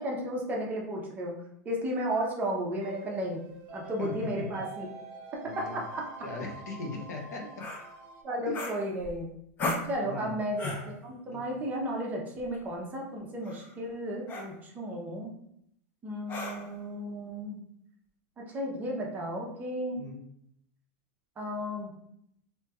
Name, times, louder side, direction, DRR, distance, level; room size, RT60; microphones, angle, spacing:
voice 1, 0.0-1.3 1.6-3.4 3.7-4.9 5.6-6.0 8.2-9.3 9.9-15.3 16.0-17.6 18.4-20.0 21.4-21.9, equal, 20° right, -2 dB, 0.7 m, -34 dB
sound 1, 2.8-8.2, right 2 dB, 40° right, 0.9 m, -46 dB
voice 2, 4.0-4.6 5.4-5.8 6.2-7.7 8.5-8.6 10.0-10.4 11.2-11.5 20.0-20.2, left 2 dB, 90° left, 0 dB, 0.9 m, -39 dB
sound 2, 7.6-7.9 8.5-9.2 9.6-9.9 10.6-10.9 12.4-12.6 13.4-13.7 14.3-14.5 16.3-16.8, left 2 dB, 20° left, 0.5 m, -35 dB
3.2 x 3.0 x 2.3 m, 0.73 s
supercardioid pair, 150°, 9 cm